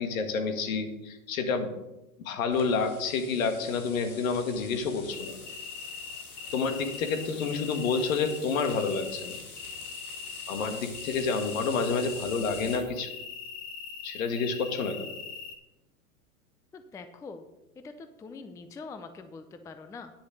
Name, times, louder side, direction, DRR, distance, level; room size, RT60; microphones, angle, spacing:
voice 1, 0.0-1.7 2.2-5.4 6.5-9.4 10.5-13.1 14.0-15.2, left 4 dB, 65° left, 7 dB, 1.9 m, -29 dB
sound 1, 2.5-12.8, left 4 dB, 80° left, 3.1 m, -46 dB
sound 2, 5.1-15.5, left 5 dB, 40° left, 1.9 m, -41 dB
voice 2, 16.7-17.5 17.8-20.1, left 4 dB, 5° left, 9 dB, 0.4 m, -44 dB
10.0 x 6.8 x 6.6 m, 0.99 s
hypercardioid pair, 105°, 44 cm